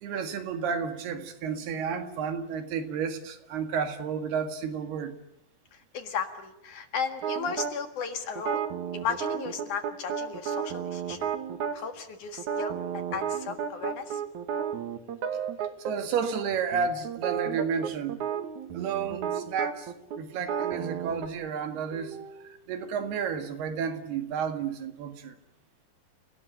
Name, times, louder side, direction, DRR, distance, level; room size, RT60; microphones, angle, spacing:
voice 1, 0.0-5.1 15.8-18.2 18.7-25.4, right 6 dB, 75° right, 3.9 m, -31 dB
voice 2, 5.9-8.7 8.9-11.3 11.7-14.2, left 6 dB, 55° left, 2.8 m, -35 dB
sound 1, 7.2-7.7 8.4-11.8 12.4-15.9 16.2-16.4 16.7-21.3, right 8 dB, 55° right, 2.7 m, -32 dB
29.5 x 18.5 x 9.0 m
omnidirectional pair, 4.7 m